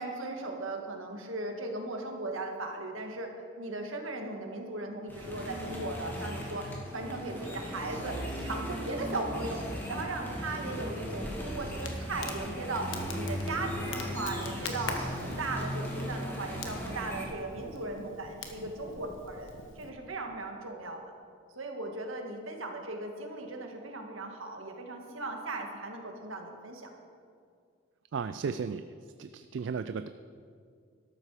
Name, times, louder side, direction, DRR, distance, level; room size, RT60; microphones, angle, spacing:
voice 1, 0.0-9.6 9.9-19.5 19.8-21.0 21.6-26.9, right 2 dB, 80° right, 3 dB, 1.7 m, -37 dB
sound 1, 5.1-17.3, equal, 10° left, 2.0 m, -37 dB
Crackle, 11.2-19.9, left 4 dB, 70° left, 1.3 m, -44 dB
voice 2, 28.1-28.8 29.2-30.1, right 5 dB, 60° right, 11 dB, 0.3 m, -34 dB
13.0 x 12.0 x 4.9 m, 2.2 s
head